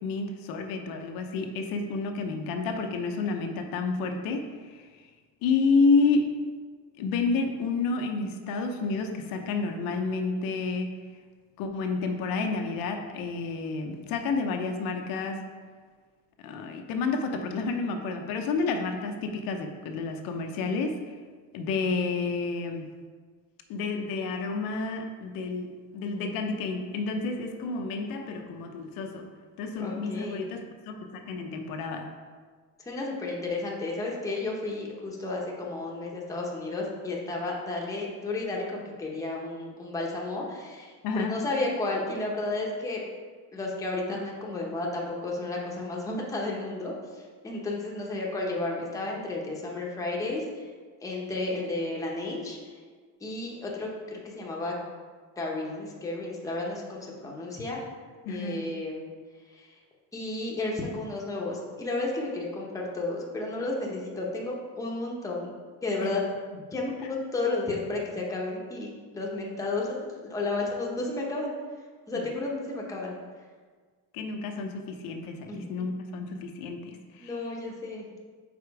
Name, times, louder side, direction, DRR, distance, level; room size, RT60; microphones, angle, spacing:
voice 1, 0.0-4.9 5.4-6.3 7.0-10.9 11.6-15.4 16.4-21.0 21.5-22.9 23.7-29.3 29.6-32.1 41.0-41.4 58.2-58.6 66.0-66.2 66.5-66.6 67.0-67.1 72.1-72.3 74.1-77.5, left 4 dB, 75° left, 4 dB, 0.7 m, -30 dB
voice 2, 29.8-30.4 32.8-43.0 43.5-46.9 47.4-50.6 51.0-52.6 53.2-54.7 55.4-57.8 58.3-59.0 59.5-59.7 60.1-65.5 65.8-66.2 66.7-71.5 72.1-73.1 75.5-75.7 77.2-78.0, left 2 dB, 10° left, -3 dB, 0.8 m, -32 dB
5.0 x 4.3 x 4.7 m, 1.5 s
cardioid pair, 155°, 35 cm